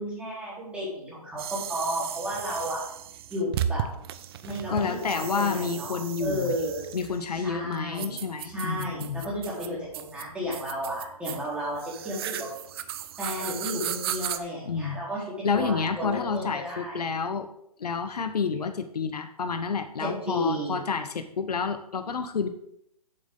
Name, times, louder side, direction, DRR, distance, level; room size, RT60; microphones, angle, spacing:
voice 1, 0.0-2.8 3.3-3.8 4.4-5.0 5.3-6.8 7.3-8.2 8.4-12.5 13.2-17.0 20.0-20.8, equal, 5° right, -7 dB, 4.0 m, -33 dB
sound 1, 1.4-14.4, right 10 dB, 40° right, 0.6 m, -36 dB
voice 2, 4.7-6.5 6.9-9.3 14.7-15.0 15.4-17.5 17.8-22.5, left 5 dB, 80° left, 8 dB, 1.0 m, -29 dB
8.7 x 7.9 x 3.9 m, 0.76 s
hypercardioid pair, 145°, 20 cm